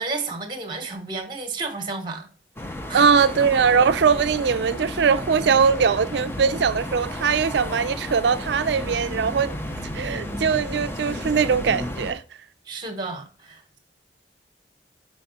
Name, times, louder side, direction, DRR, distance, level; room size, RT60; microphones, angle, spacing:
voice 1, 0.0-2.3 2.9-3.1 12.7-13.8, right 3 dB, 25° right, 1.0 m, -32 dB
sound 1, 2.6-12.1, left 1 dB, 15° left, 0.5 m, -32 dB
voice 2, 2.9-9.6 9.9-12.2, right 6 dB, 70° right, 0.4 m, -21 dB
5.1 x 4.8 x 3.9 m
head